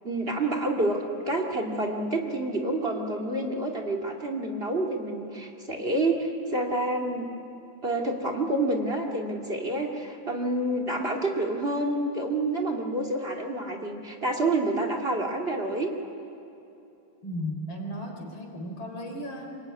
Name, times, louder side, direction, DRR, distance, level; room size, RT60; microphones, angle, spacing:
voice 1, 0.0-1.0 1.3-7.3 7.8-15.9, right 2 dB, 30° right, 3 dB, 2.4 m, -28 dB
voice 2, 17.2-19.5, equal, 85° left, 3 dB, 4.6 m, -35 dB
25.0 x 22.0 x 9.7 m, 2.9 s
omnidirectional pair, 2.2 m